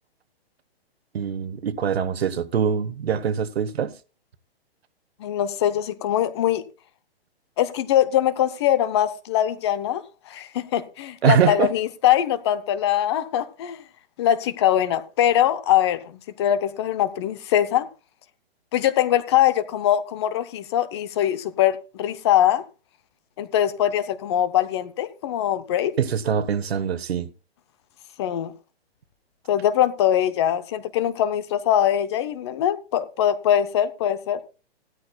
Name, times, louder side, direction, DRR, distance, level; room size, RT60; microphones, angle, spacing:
voice 1, 1.1-3.9 11.2-11.7 26.0-27.3, right 7 dB, 75° right, 1.2 m, -23 dB
voice 2, 5.2-6.6 7.6-13.8 14.2-17.9 18.7-22.6 23.4-25.9 28.2-28.5 29.5-34.4, left 11 dB, 25° left, 0.6 m, -22 dB
16.5 x 13.0 x 2.3 m
hypercardioid pair, 160°, 31 cm